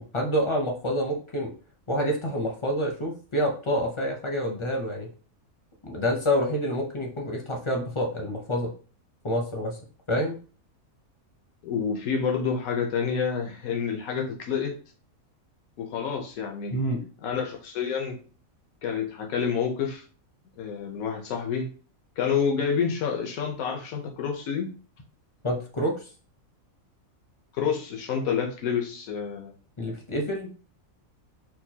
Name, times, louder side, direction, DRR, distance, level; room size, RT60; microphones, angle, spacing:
voice 1, 0.0-1.5 1.9-5.1 5.8-8.7 9.2-9.8 10.1-10.4 16.7-17.0 25.4-26.0 29.8-30.5, equal, 40° left, 0 dB, 0.4 m, -27 dB
voice 2, 11.6-14.8 15.8-16.7 17.2-18.2 18.8-20.0 20.6-21.7 22.2-24.7 27.5-29.5, left 6 dB, 90° left, 2 dB, 1.2 m, -28 dB
4.3 x 2.2 x 2.8 m, 0.38 s
omnidirectional pair, 1.4 m